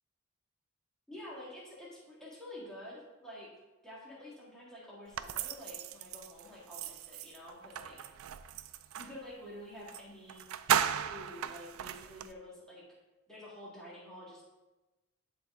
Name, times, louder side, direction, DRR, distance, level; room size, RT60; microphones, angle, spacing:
voice 1, 1.1-3.5 3.8-8.0 9.0-10.5 11.1-12.8 13.3-14.4, left 1 dB, 5° left, -7 dB, 1.8 m, -49 dB
sound 1, 5.1-9.2 9.9-10.0 10.3-12.3, right 9 dB, 90° right, 0.4 m, -36 dB
11.0 x 4.2 x 3.7 m, 1.1 s
head